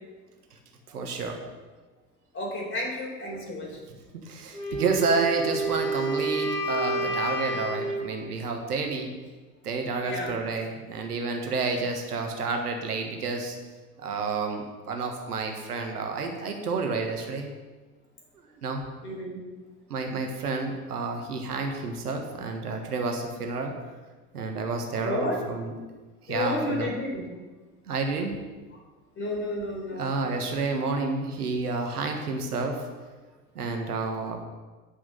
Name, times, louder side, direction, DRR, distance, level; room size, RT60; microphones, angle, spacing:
voice 1, 0.9-1.4 4.2-9.1 9.6-13.6 14.0-17.5 18.6-18.8 19.9-23.7 24.3-25.7 26.3-27.0 27.9-28.4 29.9-32.8 33.5-34.4, right 4 dB, 70° right, 3 dB, 1.5 m, -30 dB
voice 2, 2.3-3.7 10.0-10.3 19.0-19.4 25.0-25.4 26.3-27.2 29.2-30.1, left 1 dB, 25° left, -1 dB, 4.0 m, -31 dB
Wind instrument woodwind instrument, 4.5-8.1, right 2 dB, 85° left, 1.8 m, -29 dB
9.8 x 6.1 x 6.7 m, 1.3 s
figure-of-eight pair, 80°, 47 cm